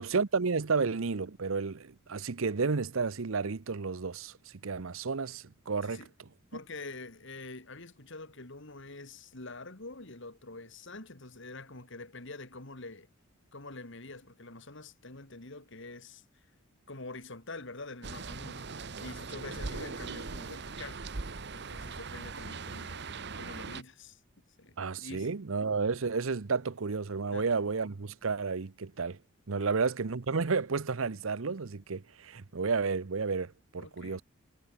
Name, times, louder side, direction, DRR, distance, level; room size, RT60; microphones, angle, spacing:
voice 1, 0.0-4.3 4.6-6.0 24.8-29.2 29.5-34.2, right 4 dB, 70° right, 0.8 m, -31 dB
voice 2, 6.5-13.1 13.5-16.2 16.9-21.0 21.5-23.1 23.3-24.2 24.6-25.3 27.3-27.6 29.6-29.7 33.7-34.2, left 3 dB, 60° left, 2.7 m, -46 dB
sound 1, 18.0-23.8, right 4 dB, 55° right, 1.1 m, -40 dB
head